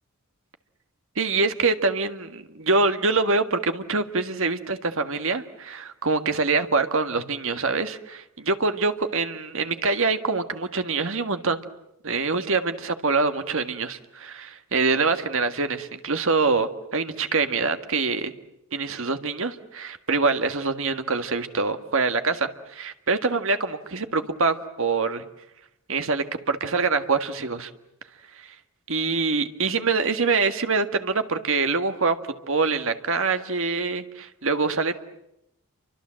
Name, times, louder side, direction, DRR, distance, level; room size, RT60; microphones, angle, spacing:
voice 1, 1.2-11.6 12.0-18.3 18.7-25.2 25.9-27.7 28.4-28.6 28.9-32.2 32.5-35.0, right 4 dB, 60° right, 8 dB, 1.7 m, -25 dB
29.5 x 25.0 x 7.7 m, 0.83 s
head